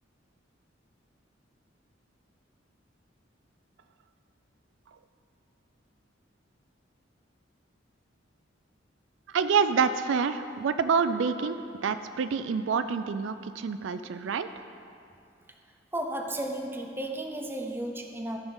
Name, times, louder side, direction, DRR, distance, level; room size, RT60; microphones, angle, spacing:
voice 1, 9.3-11.6 11.8-14.5, right 5 dB, 75° right, 11 dB, 0.4 m, -27 dB
voice 2, 15.9-18.4, right 1 dB, 10° right, 3 dB, 0.6 m, -33 dB
14.0 x 6.1 x 3.9 m, 2.5 s
head